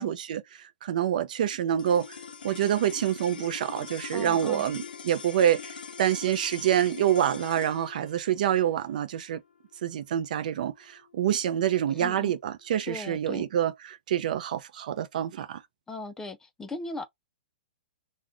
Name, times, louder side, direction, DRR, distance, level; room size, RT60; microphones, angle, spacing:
voice 1, 0.0-2.2 2.4-9.4 9.8-15.6, right 10 dB, 60° right, 0.5 m, -27 dB
sound 1, 1.8-12.2, left 6 dB, 85° left, 0.6 m, -43 dB
voice 2, 4.1-4.7 11.9-12.3 12.9-13.5 15.9-17.1, left 3 dB, 10° left, 0.3 m, -38 dB
2.4 x 2.1 x 3.6 m
hypercardioid pair, 135°, 5 cm